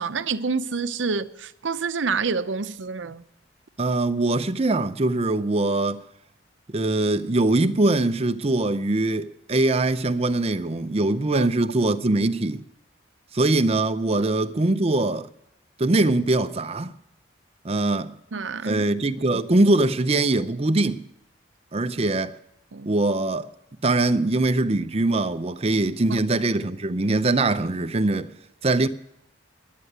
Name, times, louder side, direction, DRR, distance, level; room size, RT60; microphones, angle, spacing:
voice 1, 0.0-3.2 11.3-11.5 18.3-18.8 19.3-19.4 21.8-21.9 22.7-22.9 26.1-26.2, right 4 dB, 80° right, 0.7 m, -28 dB
voice 2, 3.8-6.0 6.7-12.6 13.3-15.3 15.8-16.9 17.6-18.1 18.6-21.0 21.7-22.3 22.9-23.5 23.8-28.3 28.6-28.9, right 2 dB, 30° right, 0.6 m, -22 dB
11.0 x 9.7 x 7.9 m
head